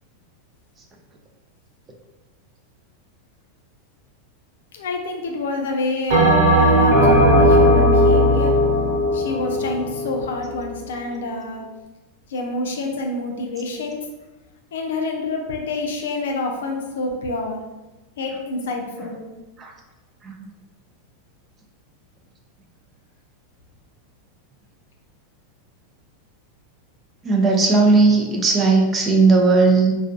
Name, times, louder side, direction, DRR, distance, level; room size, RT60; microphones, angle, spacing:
voice 1, 4.7-8.6 9.1-11.6 12.3-14.1 14.7-17.6 18.2-19.3, left 2 dB, 90° left, 2 dB, 0.5 m, -27 dB
Bell, 6.1-10.7, equal, 50° right, 1.2 m, -16 dB
voice 2, 27.2-30.0, right 3 dB, 25° right, 2 dB, 0.4 m, -16 dB
2.3 x 2.3 x 2.5 m, 1.1 s
supercardioid pair, 135°, 0 cm